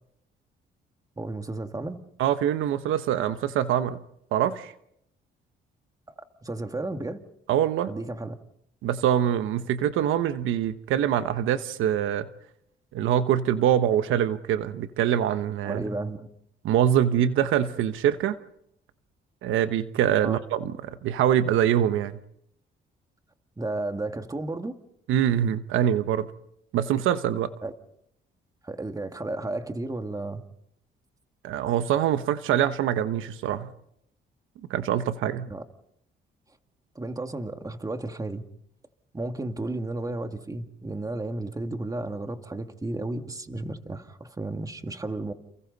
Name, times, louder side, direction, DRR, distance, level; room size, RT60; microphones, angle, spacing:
voice 1, 1.2-2.0 6.1-7.2 7.9-8.4 15.6-16.3 20.2-20.4 23.6-24.7 27.6-27.7 28.6-30.4 35.5-35.6 37.0-38.4 39.1-45.3, right 2 dB, 15° right, 6 dB, 2.0 m, -33 dB
voice 2, 2.2-4.0 4.3-4.7 7.5-7.9 8.8-12.3 12.9-15.8 16.6-18.4 19.4-22.2 25.1-26.3 26.7-27.5 31.4-33.7 34.7-35.5, right 10 dB, 85° right, 11 dB, 1.1 m, -24 dB
30.0 x 29.0 x 4.1 m, 0.75 s
cardioid pair, 90°, 20 cm